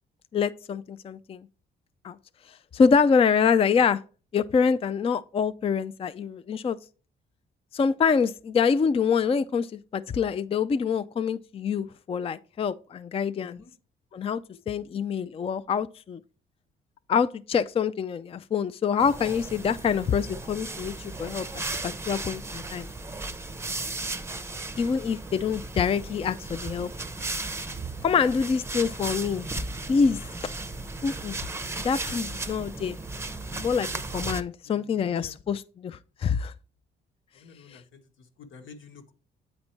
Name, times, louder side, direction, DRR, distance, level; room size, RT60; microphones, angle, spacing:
voice 1, 0.3-1.5 2.0-2.1 2.5-4.0 4.3-6.8 7.7-13.6 14.1-14.4 14.7-16.2 17.1-22.9 24.8-26.9 28.0-29.5 29.9-30.2 31.0-31.4 31.8-33.0 33.5-33.9 34.1-36.5 37.7-37.8, left 6 dB, 30° left, 0.4 m, -25 dB
voice 2, 13.4-13.7 30.0-30.2 34.6-35.4 37.3-39.1, left 5 dB, 75° left, 1.4 m, -49 dB
sound 1, 19.0-34.4, right 3 dB, 15° right, 0.6 m, -35 dB
8.8 x 4.1 x 4.4 m
cardioid pair, 90°, 20 cm